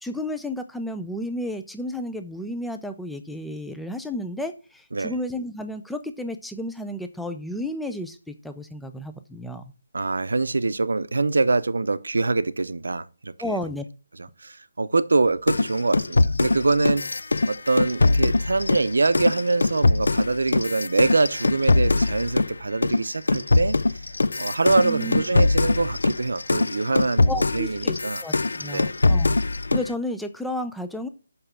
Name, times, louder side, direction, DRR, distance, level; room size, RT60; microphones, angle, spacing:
voice 1, 0.0-9.7 13.4-13.8 24.8-25.2 27.2-29.4 29.7-31.1, left 1 dB, ahead, 0.3 m, -32 dB
voice 2, 9.9-13.6 14.4-17.0 17.5-24.0 24.4-28.2 28.6-28.9, right 3 dB, 85° right, 0.7 m, -24 dB
sound 1, 15.5-22.5 22.8-29.9, left 3 dB, 80° left, 0.4 m, -22 dB
5.9 x 5.7 x 6.7 m
hypercardioid pair, 180°, 0 cm